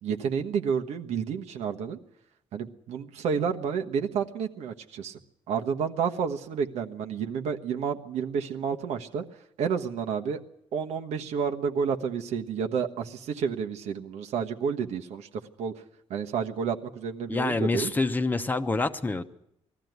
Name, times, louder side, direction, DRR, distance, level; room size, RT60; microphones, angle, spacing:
voice 1, 0.0-2.0 2.5-5.2 5.5-9.2 9.6-10.4 10.7-15.3 15.6-15.7 16.1-17.9, right 6 dB, 90° right, 4 dB, 1.3 m, -30 dB
voice 2, 17.3-19.2, left 3 dB, 15° left, 9 dB, 0.8 m, -27 dB
20.0 x 14.0 x 9.4 m, 0.76 s
cardioid pair, 155°, 11 cm